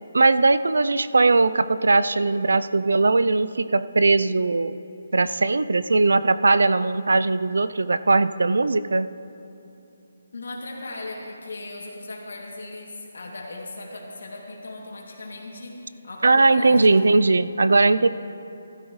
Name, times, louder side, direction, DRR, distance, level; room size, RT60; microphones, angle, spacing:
voice 1, 0.1-4.7 5.1-9.1 16.2-18.1, right 3 dB, 90° right, 14 dB, 0.4 m, -19 dB
voice 2, 10.3-17.3, left 2 dB, 70° left, -2 dB, 2.5 m, -37 dB
15.5 x 13.0 x 3.2 m, 2.8 s
hypercardioid pair, 175°, 0 cm